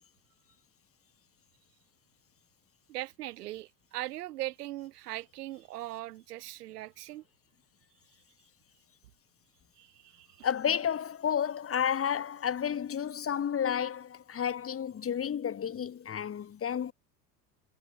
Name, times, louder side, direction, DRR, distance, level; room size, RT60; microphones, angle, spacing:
voice 1, 2.9-7.2 9.8-10.5, right 15 dB, 70° right, 1.8 m, -40 dB
voice 2, 10.4-16.9, left 8 dB, 25° left, 2.7 m, -31 dB
hypercardioid pair, 80°, 49 cm